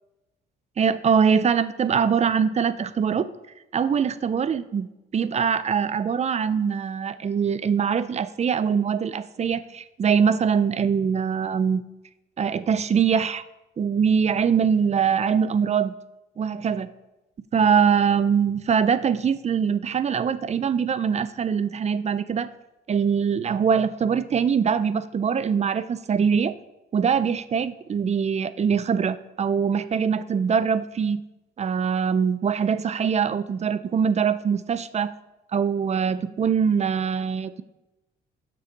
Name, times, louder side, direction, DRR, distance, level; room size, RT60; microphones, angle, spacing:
voice 1, 0.8-3.3 3.7-4.9 5.1-11.8 12.4-13.4 13.8-15.9 16.4-16.9 17.5-22.5 22.9-26.6 26.9-31.2 31.6-35.1 35.5-37.6, right 7 dB, 35° right, 14 dB, 0.4 m, -23 dB
6.8 x 6.2 x 4.5 m, 0.96 s
cardioid pair, 90°, 20 cm